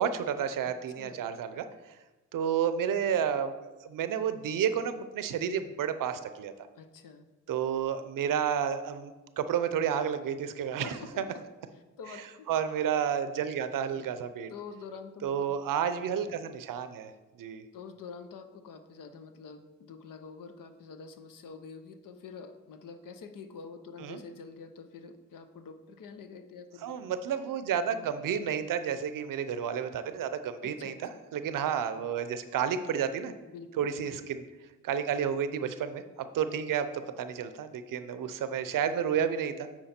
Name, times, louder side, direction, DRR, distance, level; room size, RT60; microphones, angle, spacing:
voice 1, 0.0-1.7 2.3-6.5 7.5-11.2 12.5-14.5 15.2-17.1 17.4-17.6 24.0-24.2 26.8-30.9 31.3-33.3 33.8-34.4 34.8-39.9, right 8 dB, 85° right, 11 dB, 0.6 m, -31 dB
voice 2, 0.6-1.3 6.7-7.2 10.8-11.4 11.7-12.5 14.0-14.1 14.5-15.5 16.2-16.3 17.7-26.9 30.6-31.0 33.5-33.9, left 5 dB, 80° left, 9 dB, 0.8 m, -46 dB
8.8 x 4.6 x 4.3 m, 1.2 s
cardioid pair, 65°, 32 cm